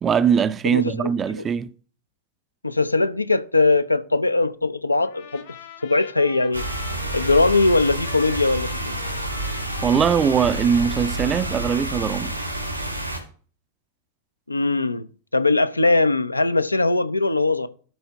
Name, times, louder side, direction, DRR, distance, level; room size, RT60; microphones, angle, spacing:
voice 1, 0.0-1.7 9.8-12.4, right 7 dB, 25° right, 0.4 m, -21 dB
voice 2, 0.6-1.1 1.4-1.5 2.6-5.4 5.8-6.6 7.1-9.0 14.5-15.1 15.3-17.7, left 3 dB, 85° left, 0.5 m, -20 dB
Trumpet, 5.0-12.9, left 8 dB, 55° left, 1.4 m, -42 dB
sound 1, 6.5-13.2, right 1 dB, 85° right, 2.2 m, -29 dB
12.0 x 4.3 x 3.4 m
figure-of-eight pair, 90°, 0 cm